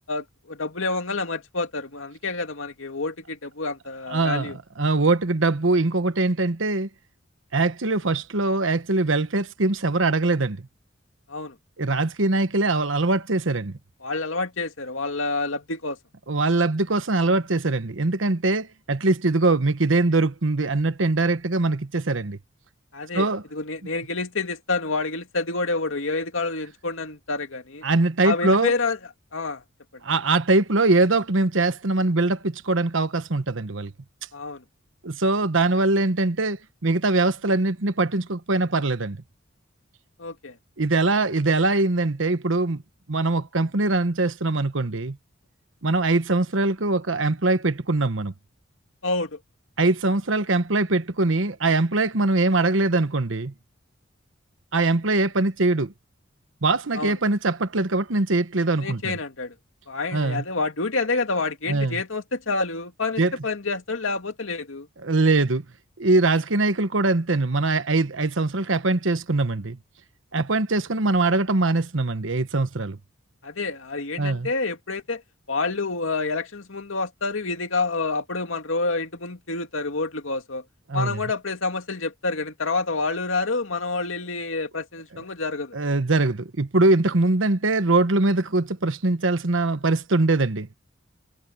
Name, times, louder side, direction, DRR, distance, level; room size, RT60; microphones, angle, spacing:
voice 1, 0.1-4.6 11.3-11.6 14.0-16.0 22.9-27.8 28.2-29.0 29.3-29.6 29.9-30.0 34.3-34.6 40.2-40.6 49.0-49.4 56.9-57.2 58.8-59.5 59.9-64.9 73.4-75.2 75.5-80.6 80.9-85.8, left 3 dB, 85° left, 2.4 m, -28 dB
voice 2, 4.1-6.9 7.5-10.7 11.8-13.7 16.3-22.4 23.1-23.4 27.8-28.7 30.0-33.9 35.0-39.2 40.8-42.8 43.1-45.2 45.8-48.3 49.8-53.5 54.7-55.9 56.6-59.2 60.1-60.4 61.7-62.0 63.2-63.3 65.0-65.6 66.0-69.8 70.3-73.0 74.2-74.5 80.9-81.2 85.7-90.7, right 2 dB, 70° right, 1.2 m, -22 dB
head